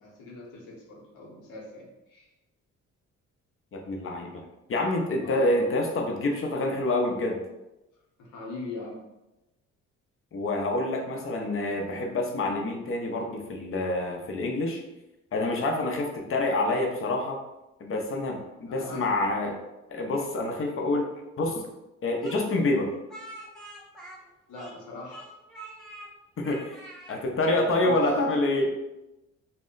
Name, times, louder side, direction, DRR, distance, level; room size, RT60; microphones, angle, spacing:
voice 1, 0.0-2.3 5.2-5.8 8.2-9.0 18.7-19.1 24.5-25.3 27.3-28.0, left 2 dB, 90° left, -3 dB, 0.9 m, -41 dB
voice 2, 3.7-4.4 4.7-7.4 10.3-14.8 15.3-17.4 17.8-19.6 19.9-21.1 21.4-21.6 22.0-22.9 26.4-26.8 27.1-28.7, left 2 dB, 45° left, 1 dB, 0.6 m, -27 dB
Speech, 22.2-24.8 25.1-26.1 26.4-27.2, right 1 dB, ahead, 0.6 m, -45 dB
2.1 x 2.0 x 3.7 m, 0.97 s
cardioid pair, 90°, 30 cm